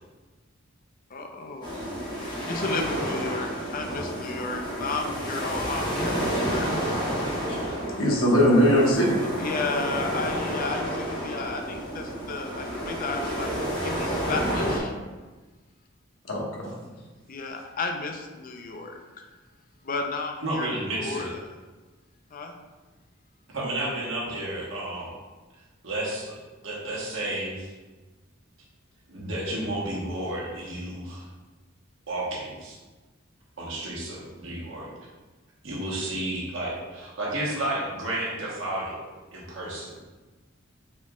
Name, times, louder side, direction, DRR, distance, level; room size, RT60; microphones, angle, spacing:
voice 1, 1.1-1.9 2.5-6.9 9.2-13.5 13.8-14.9 17.3-19.3 19.8-21.4 22.3-22.6, left 3 dB, 45° left, 3 dB, 0.5 m, -33 dB
sound 1, 1.6-14.8, equal, 20° left, 1.1 m, -30 dB
voice 2, 8.0-9.2 16.3-16.7, equal, 85° left, -3 dB, 1.1 m, -20 dB
voice 3, 20.4-21.3 23.5-25.1 25.8-26.4 26.6-27.7 29.1-31.3 32.1-32.8 33.6-34.9 35.6-39.1 39.3-40.0, right 1 dB, 75° right, -4 dB, 1.2 m, -32 dB
4.3 x 3.0 x 3.6 m, 1.3 s
head